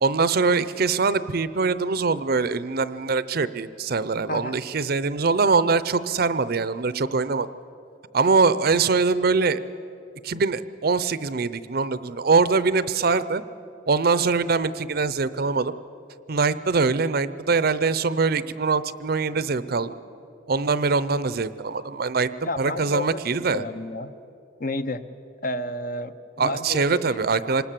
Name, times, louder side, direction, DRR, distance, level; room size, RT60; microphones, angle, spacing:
voice 1, 0.0-7.5 8.1-9.6 10.2-13.4 13.9-15.7 16.3-19.9 20.5-22.3 22.6-23.6 26.4-27.6, right 4 dB, 55° right, 15 dB, 0.6 m, -23 dB
voice 2, 22.4-24.1 24.6-25.0 25.4-27.2, left 2 dB, 45° left, 10 dB, 0.8 m, -31 dB
26.0 x 20.0 x 7.5 m, 2.7 s
head